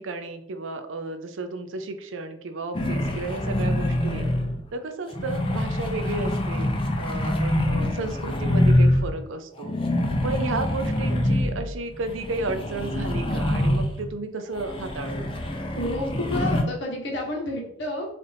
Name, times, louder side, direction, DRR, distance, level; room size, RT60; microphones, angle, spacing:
voice 1, 0.0-4.3 4.7-6.7 7.0-9.7 10.2-15.3, right 3 dB, 80° right, 8 dB, 0.5 m, -33 dB
sound 1, 2.7-4.7 5.1-9.1 9.6-14.1 14.5-16.6, left 1 dB, 25° left, 0.5 m, -25 dB
voice 2, 15.7-18.1, left 1 dB, 65° left, 0 dB, 1.0 m, -30 dB
4.2 x 2.6 x 3.4 m, 0.71 s
head